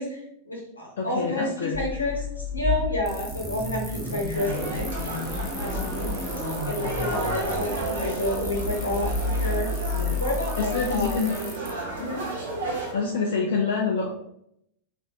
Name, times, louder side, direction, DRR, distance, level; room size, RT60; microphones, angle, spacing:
voice 1, 0.0-4.9 5.5-6.1 6.6-9.7 10.2-11.3 12.0-12.2, left 2 dB, 80° left, -2 dB, 1.0 m, -30 dB
voice 2, 1.0-1.8 9.9-10.3 10.6-11.3 12.0-12.1 12.9-14.1, left 4 dB, 55° left, 0 dB, 0.4 m, -27 dB
Car / Idling / Accelerating revving vroom, 1.7-11.2, left 2 dB, 20° right, 0.9 m, -31 dB
sound 1, 3.1-11.7, left 1 dB, 10° left, 0.7 m, -42 dB
sound 2, 4.3-12.9, right 2 dB, 65° right, 0.9 m, -33 dB
3.0 x 2.5 x 2.8 m, 0.74 s
figure-of-eight pair, 90°, 0 cm